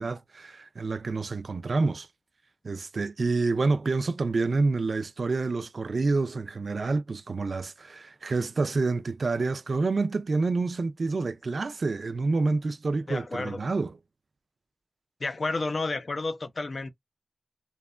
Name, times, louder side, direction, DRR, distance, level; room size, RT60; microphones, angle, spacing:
voice 1, 0.0-2.1 2.6-14.0, right 3 dB, 70° right, 0.3 m, -28 dB
voice 2, 13.1-13.6 15.2-16.9, left 3 dB, 60° left, 0.5 m, -31 dB
2.8 x 2.2 x 2.3 m
wide cardioid pair, 65°, 0 cm